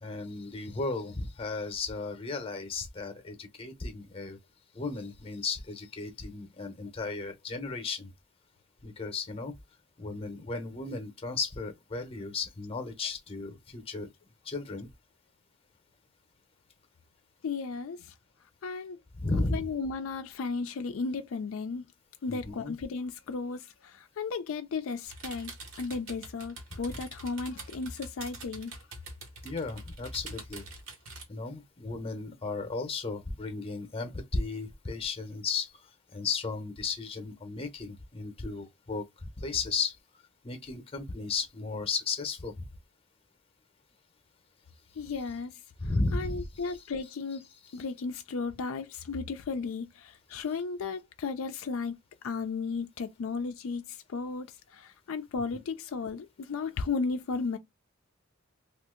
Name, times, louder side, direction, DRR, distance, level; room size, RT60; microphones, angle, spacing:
voice 1, 0.0-4.4 4.7-8.1 8.8-9.5 10.0-14.1 14.4-14.9 19.1-19.7 22.3-22.8 29.4-30.7 31.3-40.0 40.4-42.7 45.8-46.8, left 3 dB, 25° left, 0.7 m, -35 dB
voice 2, 17.4-18.0 18.6-19.0 19.5-21.8 22.2-25.5 25.8-28.7 45.0-45.5 46.1-47.5 47.7-51.9 52.2-54.5 54.7-57.6, left 4 dB, 75° left, 0.4 m, -34 dB
sound 1, 25.0-31.2, right 2 dB, 70° right, 1.2 m, -45 dB
2.7 x 2.4 x 3.7 m
head